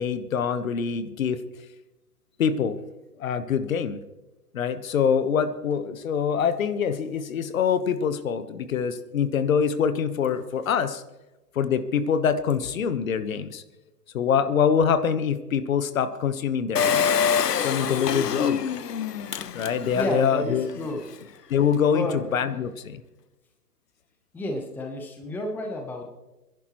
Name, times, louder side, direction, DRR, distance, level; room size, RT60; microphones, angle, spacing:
voice 1, 0.0-1.4 2.4-2.8 3.2-4.0 4.5-11.0 11.5-13.6 14.1-17.2 17.6-18.6 19.5-20.7 21.5-23.0, left 7 dB, 55° left, 11 dB, 1.3 m, -24 dB
Engine, 16.8-20.2 20.7-20.8 21.0-21.1, left 7 dB, 80° left, 1.0 m, -25 dB
voice 2, 19.9-21.1 21.9-22.2 24.3-26.1, left 1 dB, 5° left, 3 dB, 0.9 m, -31 dB
26.0 x 11.0 x 3.1 m, 1.1 s
hypercardioid pair, 135°, 47 cm